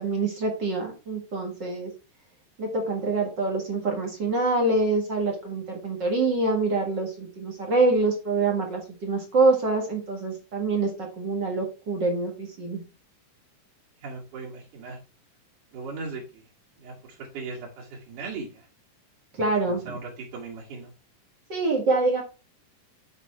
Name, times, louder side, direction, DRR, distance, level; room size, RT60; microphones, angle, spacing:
voice 1, 0.0-1.9 2.6-12.8 19.4-19.9 21.5-22.2, right 3 dB, 40° right, 2 dB, 1.6 m, -25 dB
voice 2, 14.0-15.0 15.7-16.4 16.8-18.7 19.4-20.9, right 4 dB, 60° right, -5 dB, 3.6 m, -38 dB
8.3 x 5.7 x 4.5 m, 0.31 s
omnidirectional pair, 4.4 m